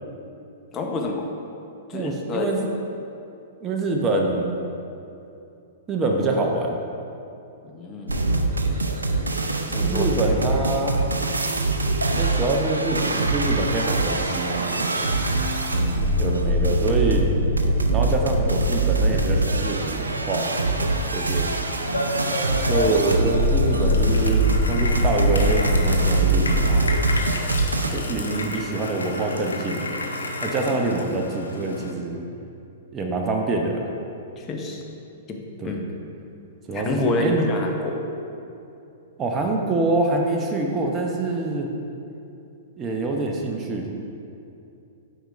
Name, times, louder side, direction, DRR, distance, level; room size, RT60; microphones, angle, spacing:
voice 1, 0.7-1.3 1.9-2.5 7.6-8.1 9.7-10.1 15.7-16.0 34.4-34.8 35.3-35.8 36.7-38.0, left 2 dB, 25° left, 1 dB, 0.8 m, -27 dB
voice 2, 1.9-2.7 3.6-4.5 5.9-6.8 9.7-11.0 12.1-15.1 16.2-17.2 17.9-21.5 22.7-26.9 27.9-30.0 30.4-32.2 32.9-33.9 35.6-35.8 36.7-37.4 39.2-41.7 42.8-43.9, right 2 dB, 20° right, 1 dB, 0.7 m, -25 dB
sound 1, 8.1-27.9, right 2 dB, 90° right, 0.5 m, -23 dB
sound 2, 21.9-31.9, left 1 dB, 85° left, 0.6 m, -31 dB
9.0 x 5.1 x 2.5 m, 2.7 s
figure-of-eight pair, 110°, 0 cm